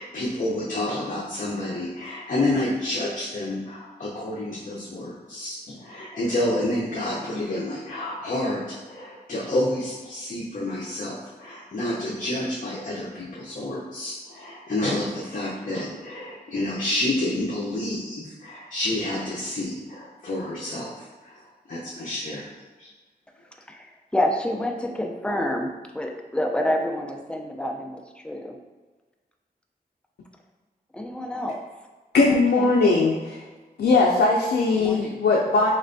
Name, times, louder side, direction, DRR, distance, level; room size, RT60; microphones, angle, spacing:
voice 1, 0.0-22.5 22.8-22.9, left 1 dB, 50° left, -6 dB, 0.7 m, -29 dB
voice 2, 24.1-28.6 30.9-31.6 32.2-32.8 34.8-35.2, left 1 dB, 5° left, 2 dB, 0.5 m, -28 dB
voice 3, 32.1-33.4 33.8-35.7, left 3 dB, 85° left, -2 dB, 0.4 m, -20 dB
4.3 x 3.1 x 2.6 m, 1.3 s
wide cardioid pair, 75°, 17 cm